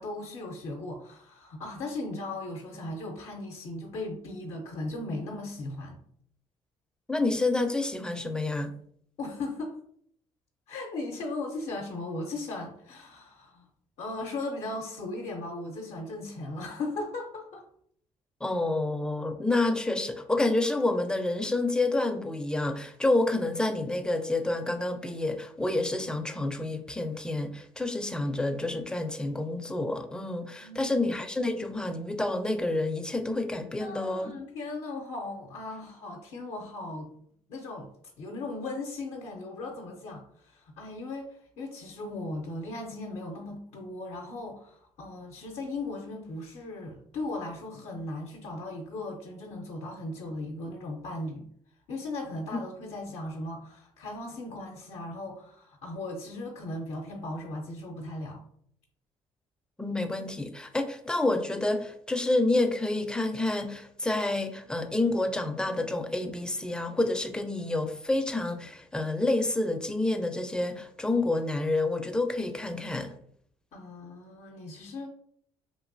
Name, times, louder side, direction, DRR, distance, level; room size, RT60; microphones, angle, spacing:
voice 1, 0.0-6.0 9.2-9.8 10.7-13.7 14.0-17.7 19.2-19.3 30.6-31.1 33.8-37.1 37.5-37.9 38.2-51.5 51.9-58.4 73.7-75.1, left 2 dB, 70° left, 0.5 m, -37 dB
voice 2, 7.1-8.7 18.4-34.3 59.8-73.1, left 2 dB, 5° left, 0.4 m, -28 dB
2.9 x 2.6 x 2.6 m
supercardioid pair, 80°, 12 cm